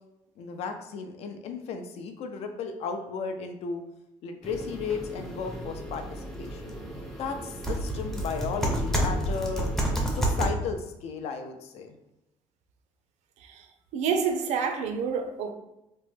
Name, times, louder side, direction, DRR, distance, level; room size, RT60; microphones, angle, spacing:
voice 1, 0.4-3.8 4.2-6.7 7.2-9.7 10.1-11.9, left 5 dB, 65° left, 6 dB, 0.4 m, -34 dB
sound 1, 4.4-10.5, right 1 dB, 5° left, 0.5 m, -30 dB
voice 2, 13.9-15.5, right 6 dB, 75° right, 6 dB, 0.4 m, -28 dB
3.0 x 2.1 x 3.1 m, 0.91 s
cardioid pair, 130°, 12 cm